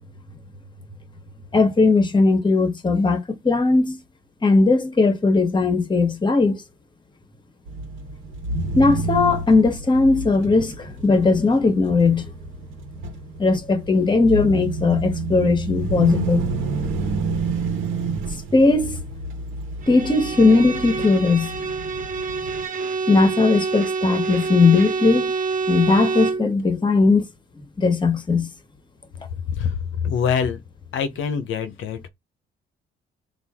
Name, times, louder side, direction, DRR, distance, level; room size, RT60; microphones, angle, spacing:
voice 1, 1.5-4.0 4.4-6.6 8.7-12.3 13.4-16.5 18.5-19.0 19.9-21.5 23.1-25.3 25.7-27.2 27.8-28.5, left 3 dB, 25° left, 1.2 m, -18 dB
sound 1, 7.7-22.6, right 3 dB, 80° right, 1.2 m, -29 dB
Bowed string instrument, 19.8-26.5, right 4 dB, 45° right, 0.9 m, -27 dB
voice 2, 29.6-30.6 30.9-32.1, left 7 dB, 80° left, 0.9 m, -24 dB
4.2 x 2.7 x 3.6 m
cardioid pair, 90°, 20 cm